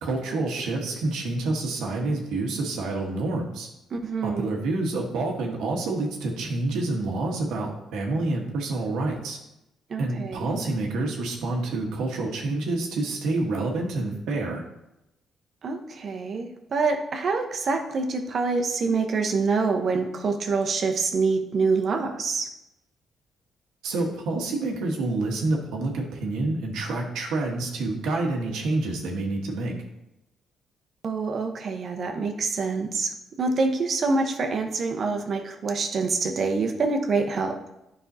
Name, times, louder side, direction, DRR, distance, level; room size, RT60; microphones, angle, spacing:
voice 1, 0.0-3.7 4.2-9.4 10.0-14.6 23.8-29.7, right 2 dB, 85° right, 1 dB, 1.3 m, -28 dB
voice 2, 3.9-4.6 9.9-10.5 15.6-22.5 31.0-37.6, right 4 dB, 55° right, 4 dB, 0.9 m, -26 dB
9.9 x 5.4 x 2.8 m, 0.88 s
cardioid pair, 90°, 0 cm